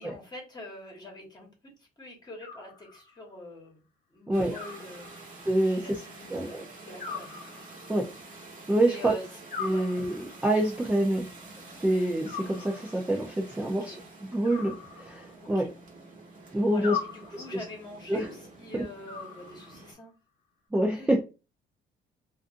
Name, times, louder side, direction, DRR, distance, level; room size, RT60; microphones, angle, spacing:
voice 1, 0.0-1.5 1.8-3.8 4.1-5.2 5.6-7.3 8.8-9.3 9.7-9.9 13.6-14.0 15.4-15.7 16.7-20.1 20.9-21.2, left 1 dB, 25° left, 0 dB, 1.2 m, -45 dB
Animal, 2.4-3.3 4.5-5.5 7.0-8.1 9.5-10.5 12.2-13.2 14.4-15.5 16.8-17.7 19.1-20.0, left 6 dB, 55° left, 0.8 m, -40 dB
sound 1, 4.3-19.9, right 3 dB, 50° right, 1.2 m, -48 dB
voice 2, 5.5-5.9 6.3-6.6 7.9-8.0 8.7-9.1 9.6-11.3 11.8-14.0 14.3-15.7 16.5-17.0 17.3-17.6 18.1-18.3 20.7-21.2, right 1 dB, 10° right, 0 dB, 0.4 m, -26 dB
2.5 x 2.4 x 2.5 m, 0.29 s
cardioid pair, 110°, 17 cm